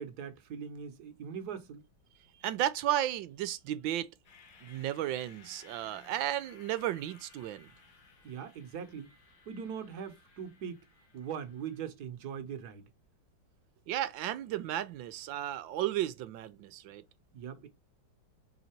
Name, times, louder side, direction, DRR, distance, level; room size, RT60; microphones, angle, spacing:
voice 1, 0.0-1.8 8.2-9.1 9.5-10.8 11.1-12.8 17.3-17.7, right 7 dB, 60° right, 1.5 m, -41 dB
voice 2, 2.4-4.1 4.6-7.7 13.9-17.0, right 12 dB, 85° right, 1.4 m, -34 dB
sound 1, 4.2-11.8, left 5 dB, 75° left, 2.2 m, -59 dB
5.6 x 4.0 x 4.4 m
omnidirectional pair, 2.1 m